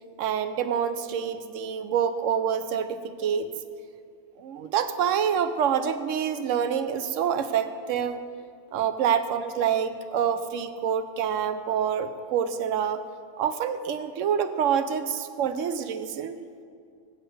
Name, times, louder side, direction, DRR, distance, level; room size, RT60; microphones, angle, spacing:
voice 1, 0.2-3.5 4.4-8.2 8.7-13.0 13.4-16.4, right 8 dB, 80° right, 11 dB, 1.0 m, -27 dB
8.3 x 6.4 x 7.7 m, 2.3 s
omnidirectional pair, 1.3 m